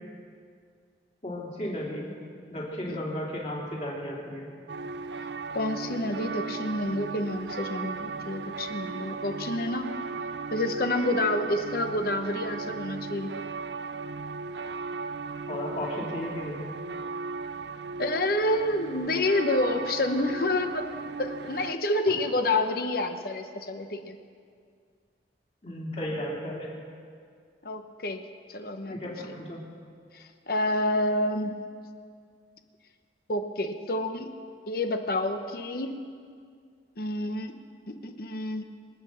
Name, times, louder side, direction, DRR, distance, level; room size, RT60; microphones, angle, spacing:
voice 1, 1.2-2.1 2.5-4.5 15.5-16.6 22.1-22.2 25.6-26.7 28.9-29.6, left 1 dB, 35° left, -4 dB, 3.4 m, -34 dB
sound 1, 4.7-21.7, right 4 dB, 70° right, 0.5 m, -36 dB
voice 2, 5.5-9.9 10.5-13.3 18.0-20.9 21.2-24.2 27.6-28.2 28.5-29.0 30.1-31.7 33.3-34.4 34.7-36.0 37.0-37.6 37.9-38.6, left 1 dB, 55° left, 7 dB, 0.9 m, -28 dB
25.5 x 8.7 x 6.4 m, 2.2 s
head